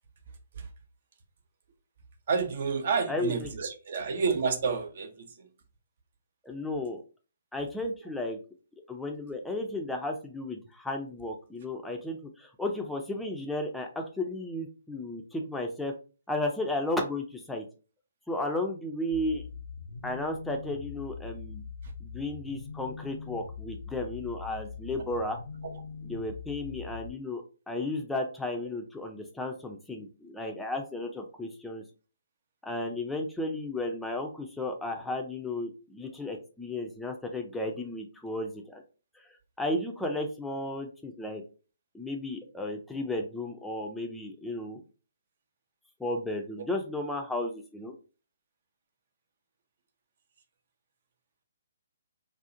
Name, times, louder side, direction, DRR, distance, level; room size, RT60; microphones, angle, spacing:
voice 1, 2.3-5.5, right 5 dB, 50° right, 0.5 m, -30 dB
voice 2, 3.1-3.5 6.4-7.0 7.5-8.4 8.9-15.9 16.3-17.6 18.3-19.4 20.0-21.6 22.0-25.4 26.0-31.8 32.6-38.8 39.1-39.3 39.6-41.4 41.9-44.8 46.0-47.9, left 2 dB, 5° left, 0.4 m, -34 dB
sound 1, 19.1-27.1, left 5 dB, 85° left, 0.4 m, -42 dB
2.5 x 2.0 x 2.5 m
figure-of-eight pair, 135°, 0 cm